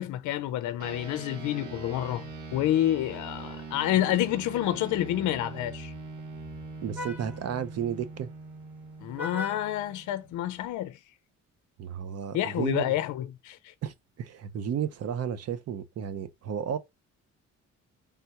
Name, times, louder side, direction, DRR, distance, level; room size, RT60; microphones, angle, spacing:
voice 1, 0.0-5.9 9.0-11.0 12.3-13.7, left 13 dB, 75° left, 0.5 m, -29 dB
sound 1, 0.8-10.5, right 3 dB, 80° right, 1.2 m, -42 dB
Vehicle horn car horn honking, 2.8-10.8, left 2 dB, 5° right, 0.8 m, -45 dB
voice 2, 6.8-8.3 11.8-12.9 13.8-16.8, right 8 dB, 55° right, 0.6 m, -33 dB
3.4 x 2.3 x 2.8 m
cardioid pair, 90°, 30 cm